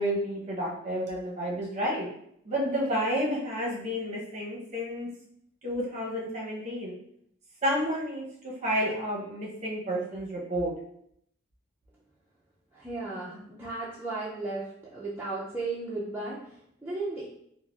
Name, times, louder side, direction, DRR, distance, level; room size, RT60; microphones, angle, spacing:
voice 1, 0.0-2.1 2.4-5.1 5.6-6.9 7.6-10.7, equal, 35° right, -3 dB, 0.8 m, -30 dB
voice 2, 12.7-17.3, right 3 dB, 10° right, -8 dB, 0.4 m, -35 dB
4.0 x 2.0 x 2.3 m, 0.72 s
head